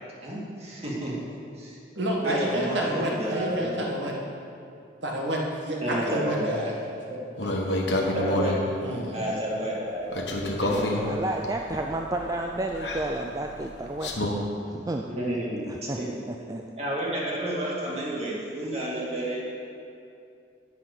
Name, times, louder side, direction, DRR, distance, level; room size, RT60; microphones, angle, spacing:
voice 1, 0.2-1.2 1.6-1.8 2.2-3.9 5.8-6.7 7.1-7.2 8.1-8.5 9.1-10.1 10.6-11.3 15.1-16.2 16.8-19.4, right 1 dB, 35° right, -5 dB, 2.1 m, -31 dB
voice 2, 1.9-4.1 5.0-6.7 7.4-7.7 8.8-9.2, equal, 90° right, -1 dB, 1.6 m, -29 dB
sound 1, 7.4-8.6 10.1-14.3, left 1 dB, 75° left, 1.1 m, -29 dB
voice 3, 11.0-14.3 14.7-15.0 15.7-16.0 16.3-16.6, right 2 dB, 20° right, 2 dB, 0.3 m, -31 dB
9.2 x 5.9 x 6.6 m, 2.5 s
head